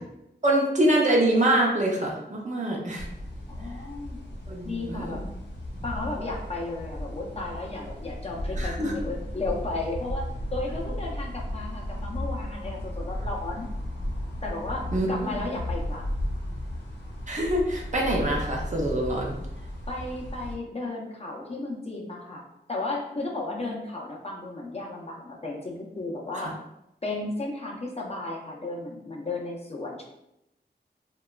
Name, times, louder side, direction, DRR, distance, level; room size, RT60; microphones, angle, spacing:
voice 1, 0.4-3.1 4.5-5.2 8.6-9.0 14.9-15.5 17.3-19.4 26.3-26.5, right 1 dB, 45° right, -2 dB, 0.6 m, -25 dB
sound 1, 3.0-20.6, left 1 dB, 75° left, 0.7 m, -35 dB
voice 2, 3.5-4.2 4.6-5.2 5.8-13.7 14.4-16.1 19.9-22.4 22.7-26.5 27.0-30.0, left 2 dB, 35° left, -2 dB, 0.5 m, -34 dB
2.8 x 2.2 x 2.2 m, 0.85 s
wide cardioid pair, 100°, 18 cm